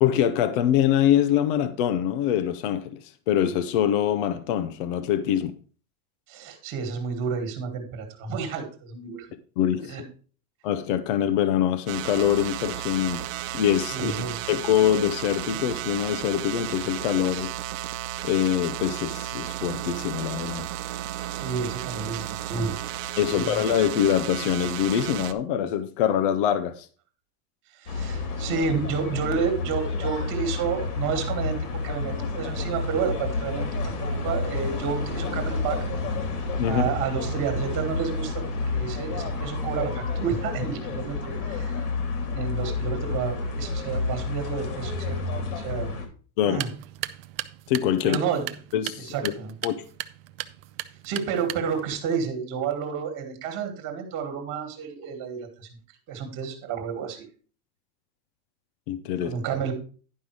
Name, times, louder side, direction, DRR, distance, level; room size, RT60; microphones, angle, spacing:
voice 1, 0.0-3.0 3.3-5.5 9.6-10.0 10.6-13.3 13.5-14.1 14.5-17.5 18.2-20.7 23.2-26.9 36.6-37.0 46.4-46.7 47.7-48.2 48.7-49.3 49.6-49.8 58.9-59.4, left 10 dB, 40° left, 0.5 m, -24 dB
voice 2, 6.3-9.3 9.9-10.0 13.9-14.5 17.3-17.5 21.3-22.8 23.3-23.8 27.8-31.6 31.8-35.9 36.6-38.4 38.7-41.7 42.1-46.0 46.4-46.7 48.0-48.5 49.1-49.5 51.0-55.7 56.1-57.2 59.2-59.7, right 6 dB, 25° right, 1.7 m, -30 dB
sound 1, 11.9-25.3, right 13 dB, 60° right, 0.8 m, -33 dB
sound 2, 27.9-46.1, left 3 dB, 85° left, 2.8 m, -30 dB
sound 3, 46.4-51.9, right 15 dB, 45° right, 0.4 m, -37 dB
10.5 x 5.5 x 4.6 m
supercardioid pair, 180°, 45 cm